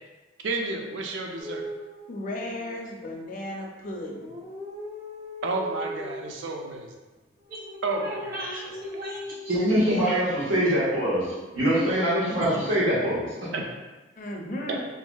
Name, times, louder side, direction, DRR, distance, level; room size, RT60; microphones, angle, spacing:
voice 1, 0.4-1.7 5.4-6.9 7.8-8.7 13.5-13.6 14.7-14.8, right 3 dB, 70° right, 1 dB, 0.4 m, -31 dB
sound 1, 1.4-3.1 3.9-6.5 7.4-10.0 11.1-11.7, left 1 dB, 20° right, 0.5 m, -40 dB
voice 2, 2.1-4.3 14.2-14.8, left 1 dB, 45° left, -1 dB, 0.4 m, -35 dB
voice 3, 7.5-9.6 10.0-10.1 10.6-10.7, equal, 50° right, -5 dB, 0.8 m, -38 dB
voice 4, 9.5-13.2, equal, 90° right, -7 dB, 1.0 m, -23 dB
3.0 x 2.6 x 2.2 m, 1.2 s
head